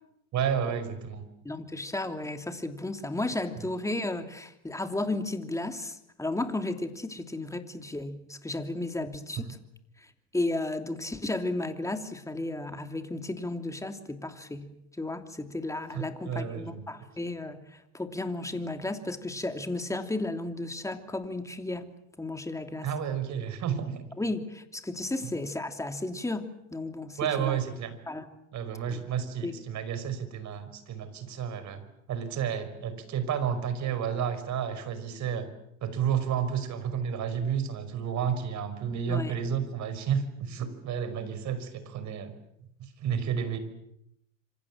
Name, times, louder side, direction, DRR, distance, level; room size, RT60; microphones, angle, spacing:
voice 1, 0.3-1.3 15.9-16.9 22.8-24.0 25.2-25.3 27.2-27.9 28.5-31.8 32.1-35.5 35.8-42.3 42.8-43.6, right 8 dB, 45° right, 11 dB, 5.5 m, -31 dB
voice 2, 1.4-9.5 10.3-14.7 15.0-21.9 22.2-22.9 24.2-27.6 28.1-28.3 28.9-29.0 29.4-29.5 39.1-39.3, left 2 dB, 10° left, 7 dB, 3.0 m, -34 dB
26.5 x 26.5 x 7.5 m, 0.79 s
hypercardioid pair, 95°, 40 cm